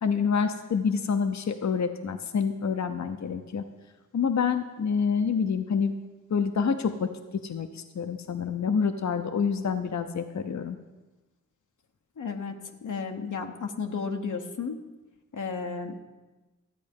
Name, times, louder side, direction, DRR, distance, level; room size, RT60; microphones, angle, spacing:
voice 1, 0.0-3.6 4.1-5.9 6.3-10.8, left 6 dB, 65° left, 8 dB, 0.6 m, -27 dB
voice 2, 12.2-14.8 15.3-16.0, left 5 dB, 90° left, 3 dB, 0.9 m, -33 dB
13.0 x 8.5 x 5.3 m, 1.2 s
wide cardioid pair, 80°, 30 cm